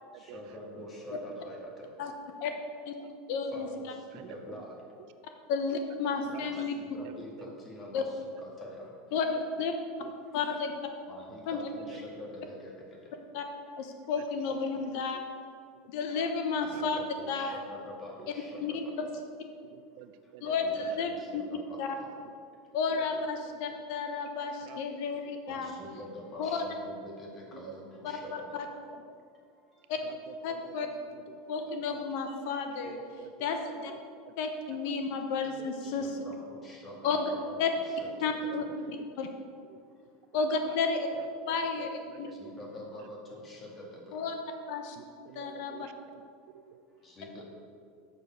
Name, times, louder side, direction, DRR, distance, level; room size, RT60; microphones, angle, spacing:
voice 1, 0.1-1.9 3.5-4.7 6.4-9.2 10.3-10.6 11.1-13.1 13.5-14.0 16.6-19.1 20.2-22.1 22.5-22.7 24.1-24.4 25.5-28.7 29.1-30.1 30.5-31.8 33.0-33.4 34.3-34.4 35.8-38.1 38.4-38.9 39.7-40.4 42.3-44.2 45.3-45.9 46.4-46.6 46.9-47.4, left 1 dB, 25° left, -2 dB, 1.9 m, -47 dB
voice 2, 3.3-3.7 5.5-6.7 7.9-8.0 9.1-9.3 9.6-9.7 10.3-10.7 11.5-11.6 13.3-13.4 13.8-15.2 15.9-17.0 17.3-17.6 18.6-18.7 19.0-19.1 20.4-21.4 21.8-21.9 22.7-25.7 26.4-26.5 28.0-28.2 29.9-30.0 30.4-30.9 31.5-33.0 33.4-33.9 34.4-36.1 37.0-37.3 37.6-37.7 38.2-39.3 40.3-41.1 41.5-42.3 44.1-44.3 44.7-45.0 45.3-45.9, left 5 dB, 65° left, 5 dB, 0.8 m, -32 dB
voice 3, 6.3-6.6 7.0-7.5 10.0-10.1 10.5-10.6 11.9-12.0 14.2-14.3 14.7-15.2 16.2-16.3 16.7-16.8 17.2-17.3 18.2-18.3 19.7-21.1 22.9-23.6 24.6-24.8 25.5-25.7 27.5-27.7 28.2-28.3 30.0-31.4 31.9-32.0 32.8-33.6 33.9-34.0 34.2-34.3 34.8-35.0 35.4-35.9 37.5-37.6 38.1-38.2 38.5-39.1 39.7-39.8 40.3-40.8 41.2-42.5 45.0-46.2 46.7-46.8 47.3-47.4, right 11 dB, 60° right, 10 dB, 0.5 m, -50 dB
6.7 x 6.6 x 5.8 m, 2.3 s
supercardioid pair, 140°, 0 cm